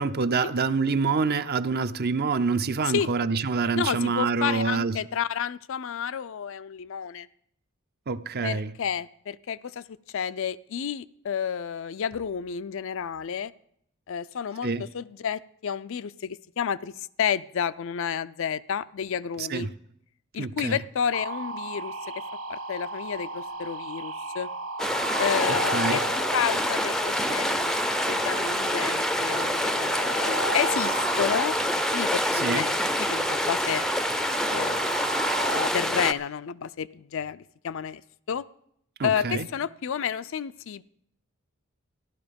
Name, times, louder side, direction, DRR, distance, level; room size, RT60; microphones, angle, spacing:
voice 1, 0.0-5.0 8.1-8.7 14.6-14.8 19.4-19.7 20.4-20.8 25.7-26.0 32.3-32.7 39.0-39.5, right 4 dB, 50° right, 0.6 m, -26 dB
voice 2, 3.7-7.3 8.4-13.5 14.1-19.7 20.3-21.9 22.5-24.5 25.2-26.0 26.3-27.8 28.0-31.6 31.9-33.8 34.5-34.9 35.4-38.0 38.3-38.4 39.0-40.8, left 7 dB, 65° left, 0.4 m, -30 dB
sound 1, 21.1-35.7, right 2 dB, 70° right, 1.0 m, -34 dB
sound 2, 24.8-36.1, left 1 dB, 5° left, 0.5 m, -27 dB
14.5 x 12.0 x 5.2 m
head